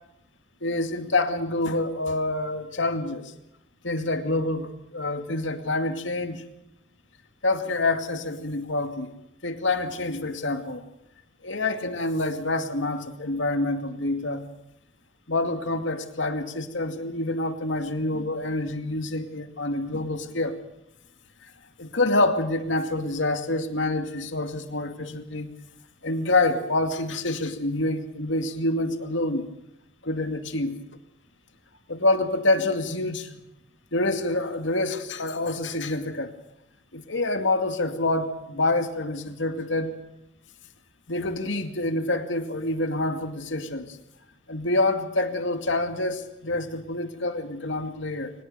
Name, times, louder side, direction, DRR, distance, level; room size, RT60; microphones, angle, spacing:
voice 1, 0.6-3.3 3.8-6.4 7.4-9.1 9.4-10.8 11.4-14.5 15.3-20.6 21.8-25.5 26.0-29.5 30.0-30.8 31.9-33.4 33.9-36.3 36.9-39.9 41.1-44.0 44.5-48.3, left 2 dB, 85° left, 7 dB, 2.4 m, -27 dB
23.5 x 19.5 x 6.9 m, 0.86 s
head